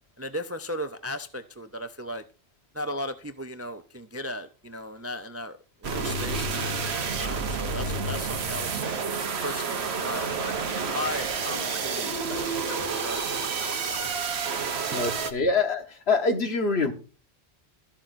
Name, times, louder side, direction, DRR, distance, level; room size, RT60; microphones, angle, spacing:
voice 1, 0.2-2.2 2.7-5.6 5.8-9.0 9.4-13.5 14.9-15.1, left 1 dB, 25° right, 0.4 m, -37 dB
sound 1, 5.8-15.3, right 5 dB, 75° right, 1.2 m, -29 dB
Scratching (performance technique), 10.1-14.1 14.5-15.2, left 3 dB, 40° left, 1.2 m, -42 dB
voice 2, 14.6-16.9, left 4 dB, 75° left, 1.5 m, -26 dB
13.0 x 7.2 x 2.5 m
omnidirectional pair, 1.1 m